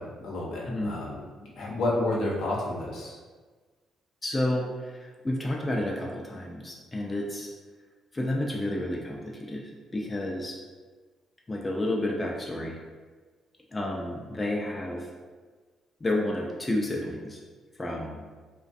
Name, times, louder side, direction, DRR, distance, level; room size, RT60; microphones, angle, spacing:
voice 1, 0.0-3.2, left 2 dB, 75° left, -4 dB, 0.6 m, -30 dB
voice 2, 0.7-1.0 4.2-7.5 8.1-10.6 11.5-12.8 13.7-15.1 16.0-17.4 17.8-18.3, left 1 dB, 20° left, -1 dB, 0.3 m, -31 dB
2.4 x 2.1 x 2.5 m, 1.4 s
cardioid pair, 90°, 0 cm